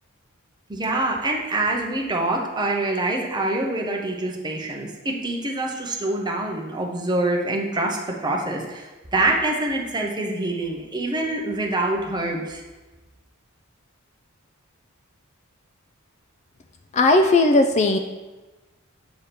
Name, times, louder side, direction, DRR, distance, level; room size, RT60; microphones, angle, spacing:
voice 1, 0.7-12.6, right 2 dB, 20° right, 0 dB, 0.9 m, -25 dB
voice 2, 16.9-18.0, left 2 dB, 30° left, 6 dB, 0.4 m, -17 dB
8.0 x 3.6 x 5.9 m, 1.2 s
head